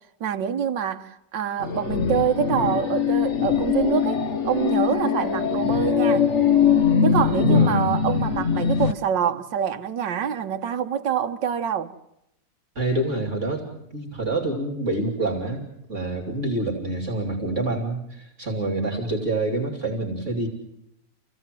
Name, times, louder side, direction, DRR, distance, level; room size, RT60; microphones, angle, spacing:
voice 1, 0.2-6.3 7.0-11.9, right 8 dB, 75° right, 1.8 m, -26 dB
sound 1, 1.6-8.9, left 7 dB, 45° left, 1.2 m, -22 dB
voice 2, 7.4-7.9 12.7-20.5, right 2 dB, 40° right, 3.4 m, -27 dB
27.5 x 17.0 x 7.6 m
omnidirectional pair, 2.0 m